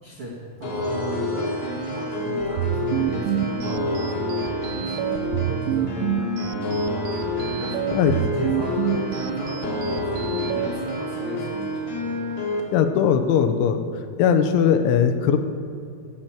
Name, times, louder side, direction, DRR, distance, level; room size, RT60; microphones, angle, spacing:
voice 1, 0.0-6.7 7.3-11.7 12.0-12.4, right 1 dB, 60° right, -4 dB, 1.4 m, -36 dB
sound 1, 0.6-12.6, left 1 dB, 50° left, 1.8 m, -28 dB
sound 2, 2.4-10.7, right 10 dB, 85° right, 2.8 m, -28 dB
voice 2, 12.7-13.8 14.2-15.4, left 8 dB, 80° left, 7 dB, 3.2 m, -19 dB
16.0 x 6.1 x 8.8 m, 2.5 s
omnidirectional pair, 5.5 m